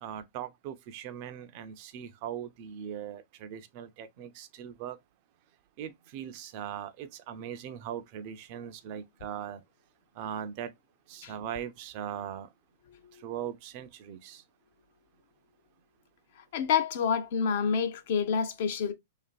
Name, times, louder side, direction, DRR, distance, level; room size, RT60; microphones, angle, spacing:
voice 1, 0.0-5.0 5.8-9.6 10.2-10.7 11.1-12.5 13.2-14.4, right 9 dB, 50° right, 0.4 m, -40 dB
voice 2, 16.5-18.9, left 6 dB, 60° left, 0.4 m, -28 dB
2.4 x 2.4 x 2.3 m
hypercardioid pair, 115°, 0 cm